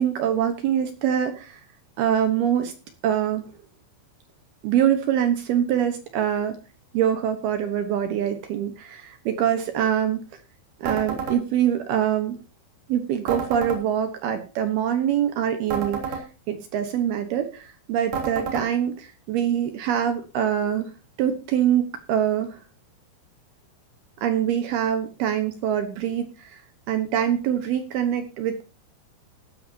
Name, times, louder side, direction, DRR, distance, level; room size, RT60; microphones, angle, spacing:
voice 1, 0.0-1.6 2.0-2.7 3.0-3.4 4.6-6.6 6.9-10.2 10.8-12.4 12.9-20.9 21.2-22.6 24.2-28.6, right 9 dB, 70° right, 7 dB, 2.5 m, -24 dB
sound 1, 10.9-11.4 13.3-13.8 15.7-16.2 18.1-18.7, right 5 dB, 45° right, 4.3 m, -29 dB
15.5 x 12.5 x 2.8 m, 0.32 s
omnidirectional pair, 5.8 m